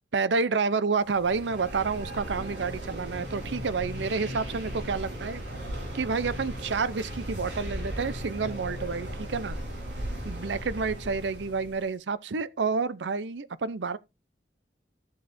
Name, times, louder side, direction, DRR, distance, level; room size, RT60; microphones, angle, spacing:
voice 1, 0.1-5.4 5.9-9.6 10.2-14.0, right 4 dB, 85° right, 0.6 m, -29 dB
sound 1, 1.0-11.9, equal, 70° right, 4.1 m, -37 dB
14.0 x 7.6 x 2.6 m
head